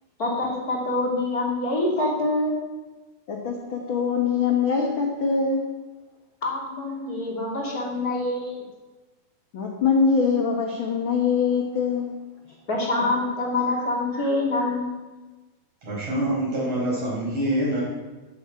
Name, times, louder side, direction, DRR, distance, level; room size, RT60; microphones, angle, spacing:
voice 1, 0.2-2.5 6.4-8.6 12.7-15.0, left 2 dB, 25° left, -2 dB, 2.8 m, -25 dB
voice 2, 3.3-5.6 9.5-12.2 13.0-13.1, left 5 dB, 70° left, 1 dB, 1.1 m, -23 dB
voice 3, 15.8-17.8, right 1 dB, 40° right, -5 dB, 6.1 m, -25 dB
9.5 x 8.3 x 8.7 m, 1.2 s
omnidirectional pair, 4.2 m